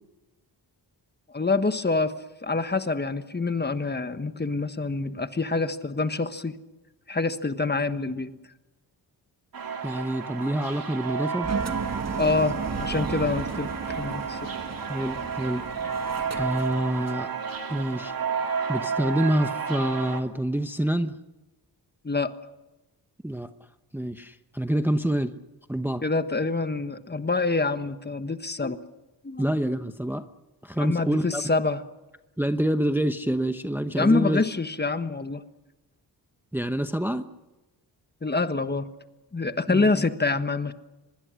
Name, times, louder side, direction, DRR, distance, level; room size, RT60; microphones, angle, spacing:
voice 1, 1.3-2.1 2.4-6.6 7.1-8.4 12.2-14.5 22.0-22.3 26.0-28.8 29.2-29.4 30.8-31.8 34.0-35.4 38.2-38.9 39.3-40.7, left 3 dB, 25° left, 10 dB, 1.3 m, -26 dB
sound 1, 9.5-20.2, right 6 dB, 55° right, 2.8 m, -32 dB
voice 2, 9.8-11.5 14.9-15.7 16.4-17.3 17.7-18.1 18.7-21.1 23.2-23.5 23.9-25.3 25.7-26.0 29.4-30.2 30.6-31.4 32.4-34.4 36.5-37.2 39.7-40.0, right 1 dB, 5° right, 9 dB, 0.9 m, -27 dB
Engine, 11.4-17.3, right 4 dB, 40° right, 1.7 m, -34 dB
24.5 x 21.0 x 6.4 m, 1.1 s
cardioid pair, 85°, 41 cm